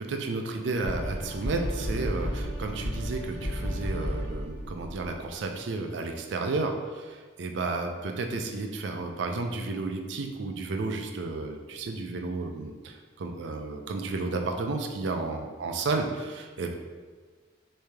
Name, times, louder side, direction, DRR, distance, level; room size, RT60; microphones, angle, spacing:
voice 1, 0.0-16.8, right 3 dB, 75° right, 4 dB, 0.4 m, -32 dB
sound 1, 0.8-5.3, equal, 65° left, 0.6 m, -33 dB
3.2 x 2.7 x 3.4 m, 1.5 s
head